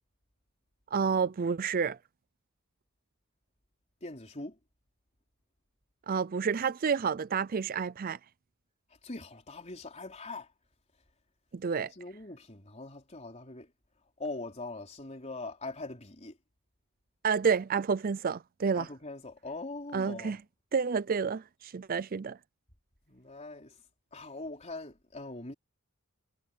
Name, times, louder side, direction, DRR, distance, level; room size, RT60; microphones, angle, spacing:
voice 1, 0.9-2.0 6.1-8.2 11.5-11.9 17.2-18.9 19.9-20.4 20.7-22.4, right 6 dB, 40° right, 0.4 m, -29 dB
voice 2, 4.0-4.6 9.0-10.5 11.9-13.7 14.2-16.4 18.8-20.4 23.1-23.8 24.1-25.5, left 2 dB, 30° left, 4.0 m, -42 dB
head